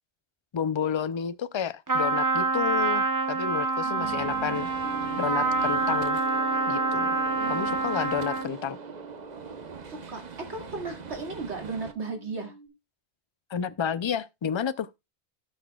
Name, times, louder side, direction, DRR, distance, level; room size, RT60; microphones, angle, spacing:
voice 1, 0.5-4.7 5.2-6.2 6.7-7.1 7.5-8.8 13.5-14.9, left 8 dB, 50° left, 0.3 m, -30 dB
Trumpet, 1.9-8.6, right 3 dB, 20° right, 0.7 m, -27 dB
voice 2, 3.8-4.7 7.4-7.8 9.9-10.2 10.5-12.5, right 3 dB, 85° right, 2.7 m, -36 dB
Gunshot gunfire, 4.0-11.9, right 5 dB, 45° right, 0.9 m, -42 dB
sound 1, 4.8-12.7, right 2 dB, 5° left, 4.1 m, -44 dB
17.0 x 6.0 x 2.3 m
omnidirectional pair, 1.1 m